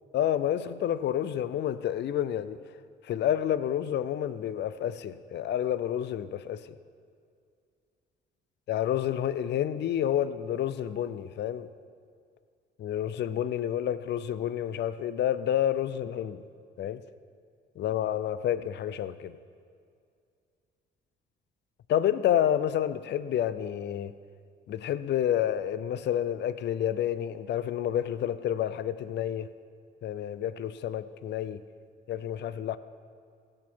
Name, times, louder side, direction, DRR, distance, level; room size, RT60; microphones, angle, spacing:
voice 1, 0.1-2.6 3.0-6.8 8.7-11.7 12.8-16.4 16.8-17.0 17.8-19.3 21.9-24.2 24.7-29.5 30.0-31.6 32.1-32.8, left 10 dB, 60° left, 14 dB, 0.5 m, -29 dB
16.5 x 7.5 x 4.6 m, 2.3 s
cardioid pair, 90°, 20 cm